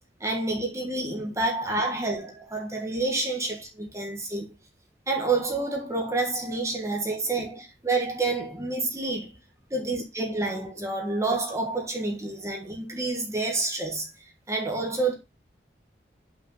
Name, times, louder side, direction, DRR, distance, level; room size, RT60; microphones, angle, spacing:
voice 1, 0.2-4.5 5.1-9.4 9.7-14.1 14.5-15.1, right 2 dB, 15° right, 1.4 m, -28 dB
5.7 x 5.1 x 5.4 m
head